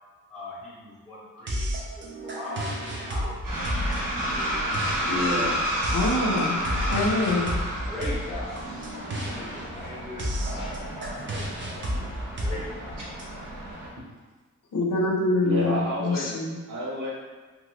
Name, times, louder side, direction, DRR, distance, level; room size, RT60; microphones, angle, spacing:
voice 1, 0.3-4.6 7.5-8.6 9.1-12.1 12.4-13.1, left 1 dB, ahead, -10 dB, 0.7 m, -40 dB
sound 1, 1.5-13.2, equal, 35° right, 0.5 m, -32 dB
sound 2, 3.4-13.9, equal, 90° right, 1.1 m, -31 dB
voice 2, 5.0-5.6 15.4-16.3 16.7-17.1, equal, 70° right, -7 dB, 0.9 m, -29 dB
voice 3, 5.9-7.5 14.7-16.6, left 2 dB, 85° left, -1 dB, 0.7 m, -25 dB
2.9 x 2.3 x 3.1 m, 1.3 s
wide cardioid pair, 170°, 32 cm